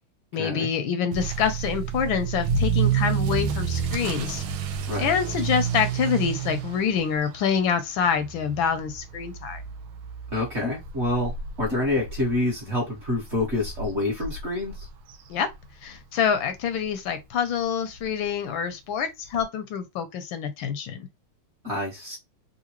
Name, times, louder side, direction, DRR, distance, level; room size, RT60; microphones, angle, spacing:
voice 1, 0.3-4.4 5.0-9.6 15.3-15.5 15.8-21.1, left 7 dB, 75° left, 1.2 m, -26 dB
Motor vehicle (road) / Accelerating revving vroom, 1.1-16.0 16.3-16.7 17.2-17.3 17.6-17.7 17.9-18.0 19.3-19.4, right 7 dB, 80° right, 1.4 m, -30 dB
voice 2, 10.3-11.3 11.6-14.9 21.6-22.2, left 2 dB, 40° right, 1.1 m, -27 dB
3.6 x 2.6 x 2.9 m
omnidirectional pair, 2.4 m